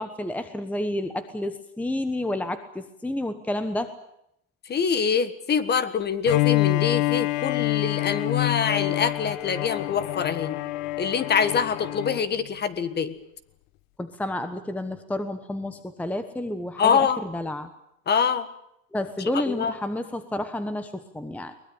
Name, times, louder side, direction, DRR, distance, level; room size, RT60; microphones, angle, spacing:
voice 1, 0.0-3.9 14.0-17.7 18.9-21.5, left 1 dB, 5° left, 10 dB, 1.1 m, -30 dB
voice 2, 4.6-10.6 11.0-13.2 16.8-17.2 18.1-18.5 19.3-19.7, left 6 dB, 25° left, 14 dB, 1.5 m, -25 dB
Bowed string instrument, 6.2-12.3, left 18 dB, 70° left, 1.3 m, -26 dB
23.0 x 20.0 x 8.7 m, 0.78 s
supercardioid pair, 135°, 41 cm